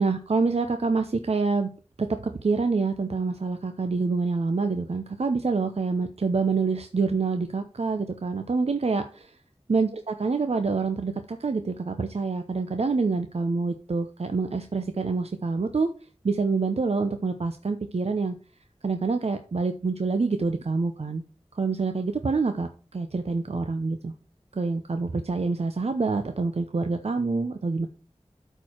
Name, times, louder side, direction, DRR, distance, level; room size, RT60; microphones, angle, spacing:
voice 1, 0.0-1.7 2.0-2.1 2.4-9.4 9.7-15.9 16.2-18.4 18.8-21.2 21.5-24.1 24.6-27.9, right 4 dB, 65° right, 7 dB, 0.8 m, -26 dB
12.0 x 4.6 x 4.5 m, 0.37 s
wide cardioid pair, 45°, 11 cm